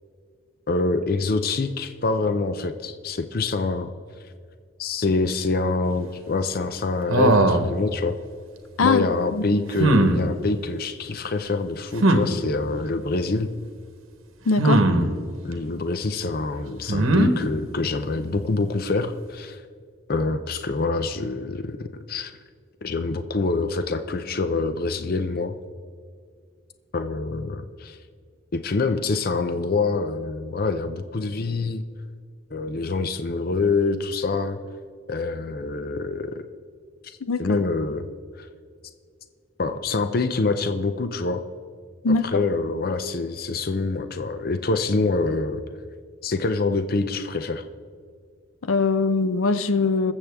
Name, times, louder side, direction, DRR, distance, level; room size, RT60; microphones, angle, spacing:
voice 1, 0.7-3.9 4.8-8.2 8.8-13.5 15.4-19.6 20.1-22.3 22.8-25.5 26.9-28.0 28.5-31.8 32.5-34.6 35.1-36.4 37.4-38.1 38.4-38.5 39.6-41.4 42.1-45.6 46.2-47.6, left 3 dB, 45° left, 0.5 m, -25 dB
sound 1, 7.1-7.7 9.8-10.2 12.0-12.2 14.6-15.1 16.9-17.3, right 2 dB, 85° right, 1.1 m, -18 dB
voice 2, 14.5-14.9 37.3-37.6 42.0-42.4 48.6-50.1, left 3 dB, 85° left, 0.6 m, -21 dB
21.0 x 7.3 x 3.5 m
head